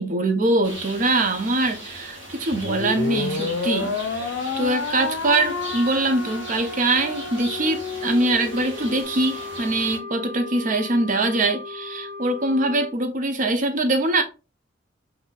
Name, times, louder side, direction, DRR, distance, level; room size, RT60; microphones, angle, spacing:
voice 1, 0.0-14.2, right 2 dB, 45° right, 0.6 m, -23 dB
sound 1, 0.6-10.0, right 1 dB, 70° right, 1.3 m, -38 dB
sound 2, 2.5-9.0, left 4 dB, 85° left, 0.5 m, -30 dB
Wind instrument woodwind instrument, 8.5-13.0, left 3 dB, 90° right, 0.8 m, -37 dB
4.0 x 2.7 x 2.3 m
head